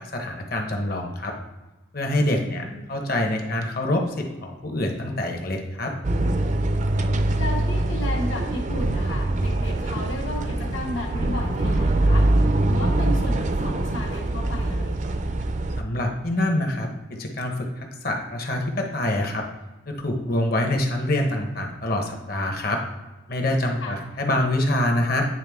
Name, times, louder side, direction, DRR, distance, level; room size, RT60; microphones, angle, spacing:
voice 1, 0.0-1.4 1.9-5.9 15.8-19.4 19.9-22.8 23.3-25.3, left 1 dB, 50° left, 2 dB, 1.0 m, -25 dB
voice 2, 2.3-2.9 7.4-15.0 23.8-24.0, left 1 dB, 80° left, -1 dB, 1.4 m, -34 dB
sound 1, 6.0-15.8, right 1 dB, 40° right, 0.4 m, -23 dB
9.1 x 3.5 x 3.6 m, 1.1 s
head